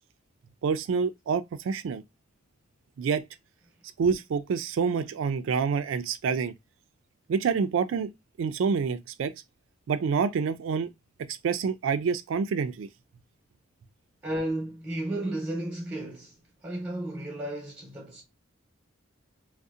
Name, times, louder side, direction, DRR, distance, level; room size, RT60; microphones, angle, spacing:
voice 1, 0.6-2.0 3.0-3.2 4.0-6.5 7.3-8.1 8.4-9.3 9.9-10.9 11.3-12.9, right 6 dB, 80° right, 0.3 m, -27 dB
voice 2, 14.2-18.2, right 1 dB, 15° right, 0.8 m, -33 dB
2.7 x 2.0 x 2.3 m
head